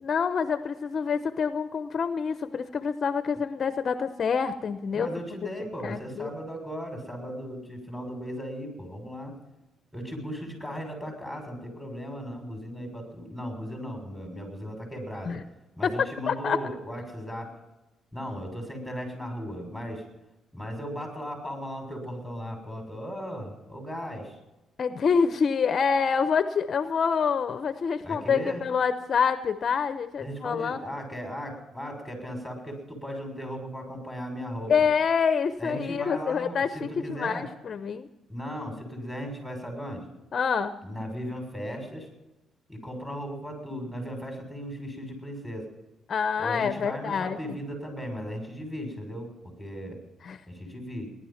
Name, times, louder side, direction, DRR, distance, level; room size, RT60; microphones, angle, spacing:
voice 1, 0.0-5.2 5.8-6.3 15.2-15.4 15.8-16.6 24.8-30.8 34.7-38.1 40.3-40.8 46.1-47.4 50.2-50.4, left 6 dB, 50° left, 10 dB, 0.8 m, -26 dB
voice 2, 4.9-9.3 9.9-15.4 15.8-17.5 18.1-20.0 20.5-24.4 28.0-28.6 30.2-34.9 35.6-37.5 38.3-40.0 40.8-42.1 42.7-45.6 46.4-50.0 50.5-51.1, equal, ahead, 3 dB, 6.5 m, -36 dB
18.5 x 11.5 x 5.8 m, 1.0 s
cardioid pair, 90°, 0 cm